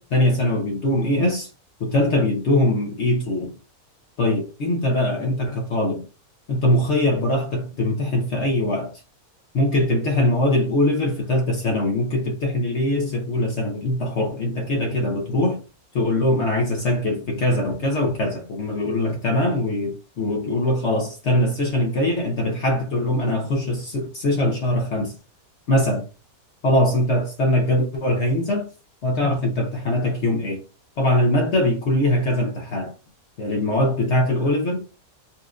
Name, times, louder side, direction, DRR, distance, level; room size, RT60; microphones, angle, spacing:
voice 1, 0.0-1.5 1.8-3.5 4.2-6.0 6.5-9.0 9.5-15.6 15.9-25.2 25.7-26.0 26.6-28.7 29.0-30.6 31.0-32.9 33.4-34.8, left 1 dB, 55° left, 0.9 m, -22 dB
4.2 x 2.5 x 2.3 m
omnidirectional pair, 1.6 m